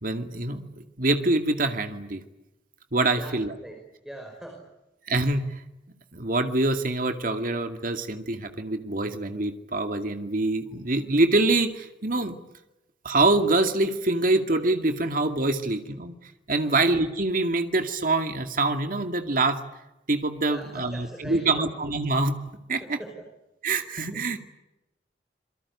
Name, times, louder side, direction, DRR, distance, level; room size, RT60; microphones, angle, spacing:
voice 1, 0.0-2.2 2.9-3.5 5.1-5.6 6.1-12.4 13.0-16.1 16.5-19.6 20.1-22.4 22.7-23.0 23.6-24.4, right 2 dB, 50° right, 6 dB, 2.3 m, -25 dB
voice 2, 4.0-4.7 10.7-10.8 16.6-16.8 20.5-21.7 22.8-23.2 24.1-24.3, right 1 dB, 5° right, 2 dB, 5.4 m, -42 dB
27.0 x 23.0 x 8.5 m, 0.94 s
head